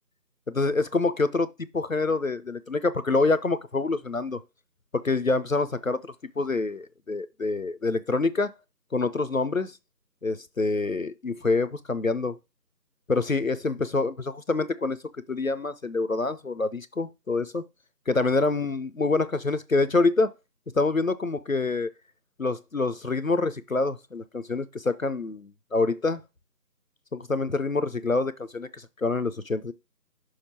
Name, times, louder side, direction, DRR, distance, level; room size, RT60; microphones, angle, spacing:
voice 1, 0.5-4.4 4.9-6.0 6.4-8.5 8.9-9.7 10.2-12.3 13.1-15.0 15.3-17.6 18.1-20.3 20.7-21.9 22.4-26.2 27.1-29.7, left 3 dB, 55° left, 0.5 m, -26 dB
6.4 x 3.2 x 5.8 m
figure-of-eight pair, 170°, 49 cm